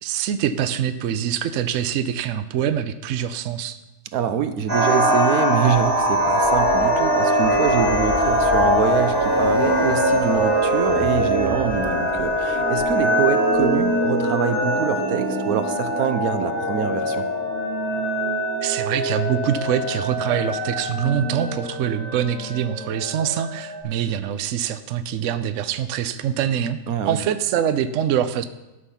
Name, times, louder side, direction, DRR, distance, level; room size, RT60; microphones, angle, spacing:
voice 1, 0.0-3.8 18.6-26.8 27.0-28.5, right 9 dB, 70° right, 11 dB, 0.9 m, -24 dB
voice 2, 4.1-17.2 26.9-27.2, right 8 dB, 85° right, 10 dB, 1.2 m, -25 dB
sound 1, 4.7-23.8, equal, 20° left, 5.0 m, -22 dB
sound 2, 5.7-14.1, left 1 dB, 10° right, 0.8 m, -38 dB
12.5 x 6.5 x 5.6 m, 1.0 s
omnidirectional pair, 1.5 m